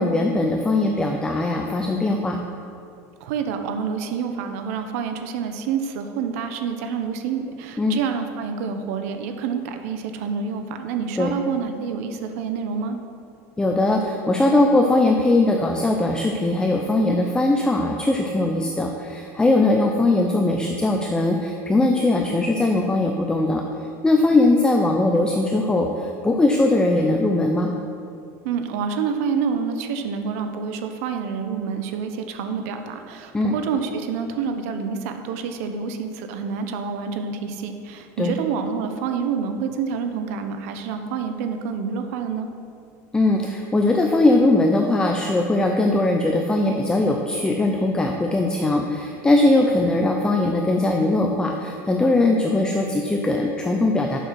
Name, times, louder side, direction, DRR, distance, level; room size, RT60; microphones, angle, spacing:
voice 1, 0.0-2.4 7.8-8.0 11.2-11.3 13.6-23.6 24.0-27.7 33.3-33.5 38.2-38.3 43.1-54.2, left 2 dB, 10° left, 2 dB, 0.6 m, -20 dB
voice 2, 3.2-13.0 28.4-42.5, right 6 dB, 75° right, 6 dB, 0.8 m, -28 dB
6.7 x 6.5 x 5.9 m, 2.5 s
supercardioid pair, 120°, 8 cm